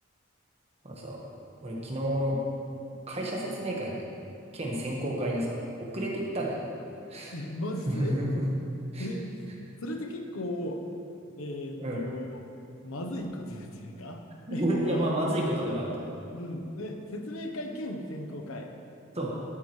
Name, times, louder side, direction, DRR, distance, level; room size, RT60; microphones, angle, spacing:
voice 1, 0.8-1.2 1.6-2.4 3.1-4.0 4.5-6.7 7.1-7.3 7.9-8.5 8.9-9.1 11.8-12.0 14.5-16.1 19.1-19.3, right 1 dB, 30° right, -3 dB, 1.5 m, -30 dB
voice 2, 7.3-8.2 9.0-9.2 9.8-10.8 11.4-12.4 12.8-14.2 14.5-15.1 16.3-18.7, left 1 dB, 85° left, 4 dB, 1.0 m, -36 dB
13.0 x 8.7 x 3.3 m, 2.7 s
head